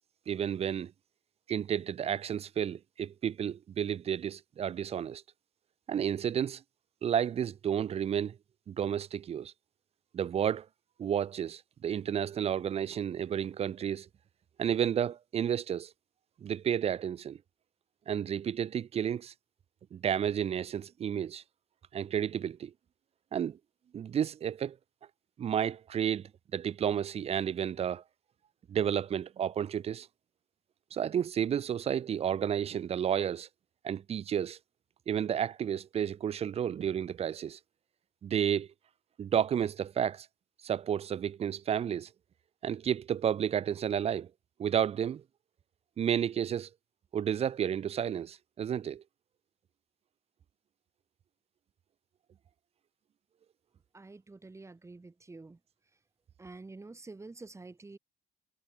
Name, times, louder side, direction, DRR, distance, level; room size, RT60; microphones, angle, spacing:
voice 1, 0.3-0.9 1.5-5.2 5.9-6.6 7.0-8.4 8.7-9.5 10.1-10.7 11.0-14.1 14.6-15.9 16.4-17.4 18.1-19.3 19.9-21.4 21.9-22.7 23.3-23.6 23.9-24.8 25.4-28.0 28.7-30.1 30.9-33.5 33.8-34.6 35.1-37.6 38.2-38.7 39.2-40.3 40.6-42.1 42.6-44.3 44.6-45.2 46.0-46.7 47.1-49.0, right 9 dB, 40° right, 0.6 m, -31 dB
voice 2, 53.9-55.6 56.4-58.0, right 3 dB, 15° right, 5.2 m, -48 dB
cardioid pair, 110°, 17 cm